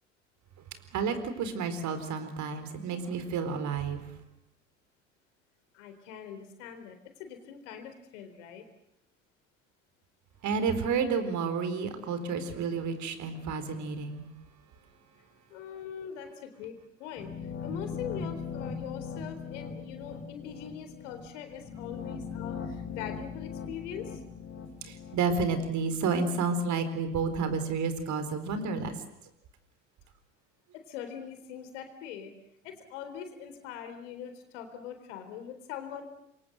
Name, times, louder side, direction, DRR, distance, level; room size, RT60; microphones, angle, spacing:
voice 1, 0.9-4.0 10.4-14.3 24.8-29.0, right 5 dB, 50° right, 10 dB, 4.3 m, -30 dB
voice 2, 5.7-8.7 15.5-17.3 17.6-24.2 30.7-32.3 32.6-36.0, left 8 dB, 70° left, 8 dB, 3.9 m, -42 dB
sound 1, 17.2-26.1, left 6 dB, 30° left, 4.1 m, -40 dB
27.0 x 23.0 x 8.0 m, 0.79 s
hypercardioid pair, 65°, 38 cm